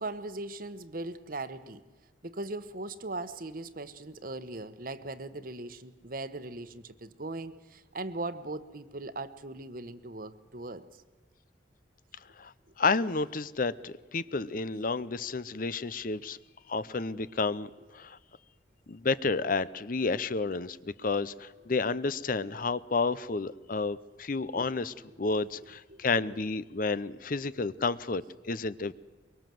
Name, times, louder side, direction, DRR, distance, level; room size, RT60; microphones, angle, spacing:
voice 1, 0.0-1.8 2.2-10.9 24.6-24.7 25.9-26.0 28.9-29.0, right 2 dB, 50° right, 13 dB, 1.2 m, -39 dB
voice 2, 12.8-16.4 16.7-18.2 18.9-28.9, left 4 dB, 50° left, 17 dB, 0.7 m, -31 dB
23.5 x 22.5 x 7.7 m, 1.2 s
head